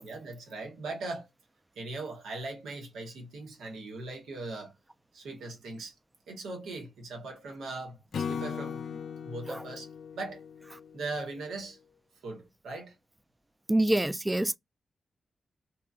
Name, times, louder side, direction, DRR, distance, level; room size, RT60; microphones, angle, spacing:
voice 1, 0.0-1.3 1.8-4.7 5.1-5.9 6.3-9.9 10.1-10.4 10.9-11.8 12.2-13.0, right 3 dB, 85° right, 0.9 m, -39 dB
Acoustic guitar / Strum, 8.1-11.5, left 6 dB, 75° left, 0.3 m, -38 dB
voice 2, 13.7-14.6, right 1 dB, 20° right, 0.3 m, -25 dB
2.8 x 2.3 x 2.3 m
supercardioid pair, 40°, 0 cm